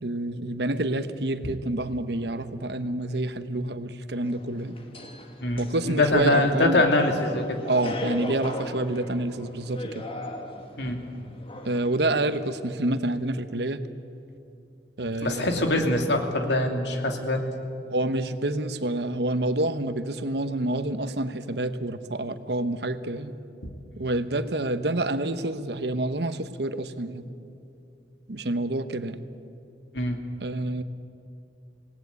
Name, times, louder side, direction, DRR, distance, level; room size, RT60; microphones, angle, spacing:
voice 1, 0.0-4.7 5.6-6.8 7.7-10.0 11.6-13.8 15.0-15.8 17.9-23.3 24.0-27.2 28.3-29.2 30.4-30.8, right 2 dB, 65° right, 11 dB, 1.1 m, -28 dB
sound 1, 4.2-12.4, left 1 dB, 30° left, 1.9 m, -38 dB
voice 2, 5.4-7.6 10.8-11.0 15.2-17.4 23.6-23.7 29.9-30.2, left 2 dB, 75° left, 4 dB, 2.6 m, -23 dB
27.5 x 18.5 x 8.3 m, 2.7 s
head